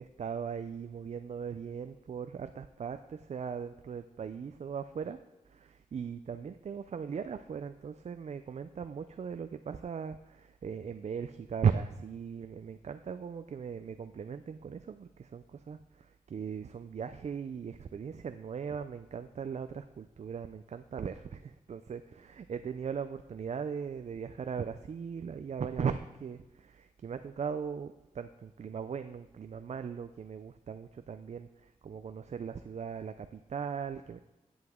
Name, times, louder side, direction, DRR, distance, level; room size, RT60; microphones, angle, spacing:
voice 1, 0.0-5.2 5.5-34.2, right 6 dB, 50° right, 10 dB, 0.4 m, -38 dB
16.0 x 7.9 x 3.6 m, 0.99 s
wide cardioid pair, 140°, 14 cm